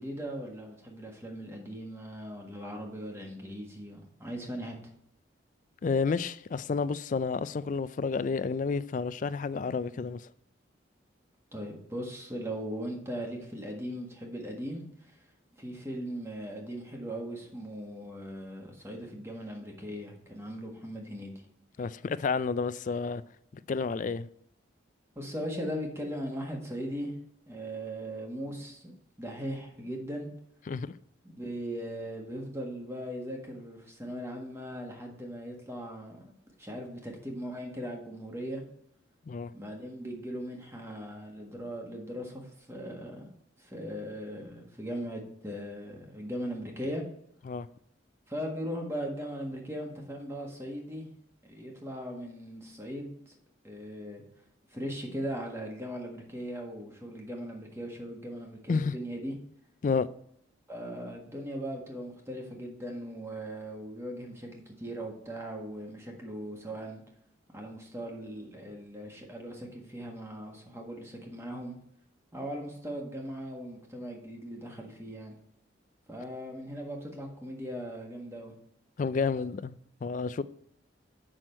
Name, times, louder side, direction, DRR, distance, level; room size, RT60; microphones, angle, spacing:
voice 1, 0.0-4.8 11.5-15.2 15.6-21.4 25.1-27.2 27.5-28.9 29.2-30.3 31.3-38.6 39.5-43.3 43.6-47.0 48.3-51.1 51.4-53.3 53.6-54.2 54.7-59.3 60.7-67.0 67.5-71.7 72.3-75.3 76.1-78.5, equal, 15° right, 1.6 m, -39 dB
voice 2, 5.8-10.3 21.8-23.2 23.7-24.3 30.7-30.9 39.3-39.5 47.5-47.7 58.7-58.9 59.8-60.1 79.0-80.4, left 4 dB, 40° left, 0.3 m, -30 dB
7.7 x 6.2 x 4.4 m
head